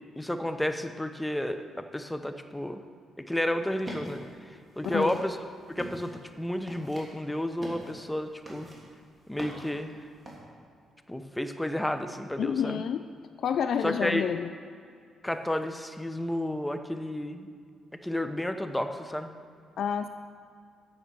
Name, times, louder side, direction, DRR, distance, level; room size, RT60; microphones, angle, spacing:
voice 1, 0.2-1.6 1.9-2.8 3.3-4.2 4.8-5.4 5.7-6.1 6.4-8.7 9.3-9.9 11.1-12.8 13.8-14.3 15.2-17.5 18.0-19.3, left 1 dB, 5° left, 8 dB, 0.7 m, -31 dB
sound 1, 3.7-10.4, right 1 dB, 20° right, 2.7 m, -45 dB
voice 2, 4.8-5.2 12.4-13.0 13.4-14.5 19.8-20.1, left 8 dB, 65° left, 9 dB, 0.4 m, -29 dB
8.8 x 6.6 x 6.9 m, 2.3 s
cardioid pair, 90°, 0 cm